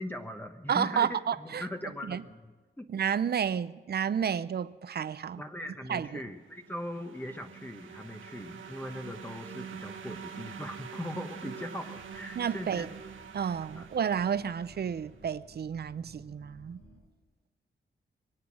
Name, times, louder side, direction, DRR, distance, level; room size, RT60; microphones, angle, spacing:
voice 1, 0.0-2.9 5.4-12.9 13.7-13.9, left 1 dB, 10° left, 1.1 m, -40 dB
voice 2, 0.7-1.6 2.1-2.2 2.9-5.4 5.9-6.2 12.4-12.9 13.3-16.8, right 8 dB, 55° right, 0.6 m, -31 dB
sound 1, 6.5-15.1, right 7 dB, 85° right, 1.2 m, -45 dB
sound 2, 11.9-17.0, equal, 90° left, 6.1 m, -56 dB
22.5 x 8.3 x 7.5 m
cardioid pair, 65°, 20 cm